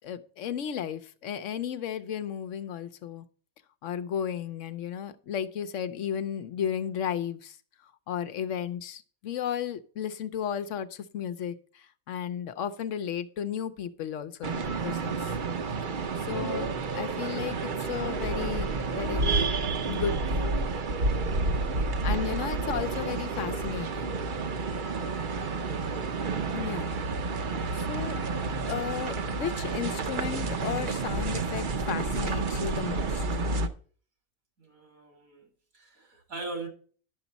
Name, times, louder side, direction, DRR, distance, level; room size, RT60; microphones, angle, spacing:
voice 1, 0.0-3.2 3.8-7.6 8.1-15.3 16.2-19.3 19.8-20.5 22.0-24.2 26.5-26.9 27.7-28.2 28.7-33.2, left 9 dB, 70° left, 1.0 m, -34 dB
sound 1, 14.4-33.7, right 3 dB, 45° right, 0.7 m, -30 dB
voice 2, 34.6-35.5 35.7-36.7, right 3 dB, 85° right, 2.9 m, -41 dB
10.5 x 7.0 x 4.1 m
omnidirectional pair, 1.4 m